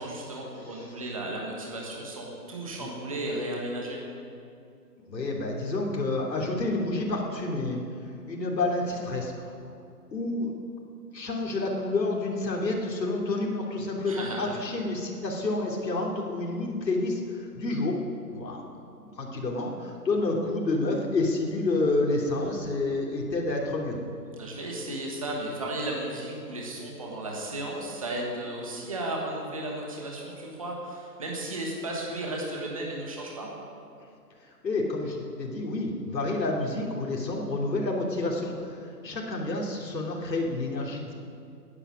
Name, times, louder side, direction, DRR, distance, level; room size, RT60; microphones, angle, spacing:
voice 1, 0.0-4.0 14.1-14.6 24.4-33.5, right 1 dB, 20° right, -2 dB, 1.2 m, -34 dB
voice 2, 5.1-7.8 8.3-9.5 10.1-10.5 11.1-18.0 18.3-18.6 19.2-24.0 34.6-38.8 39.0-41.1, left 2 dB, 80° left, -1 dB, 3.2 m, -29 dB
17.5 x 9.9 x 6.4 m, 2.6 s
hypercardioid pair, 180°, 50 cm